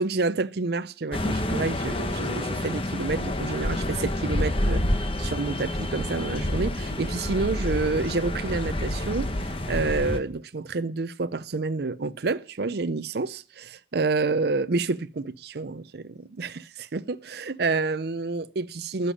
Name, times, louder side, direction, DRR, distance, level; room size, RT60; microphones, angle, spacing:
voice 1, 0.0-4.8 5.2-19.1, right 3 dB, 60° right, 0.6 m, -29 dB
sound 1, 1.1-10.2, left 1 dB, 30° left, 1.3 m, -28 dB
15.0 x 6.9 x 10.0 m
head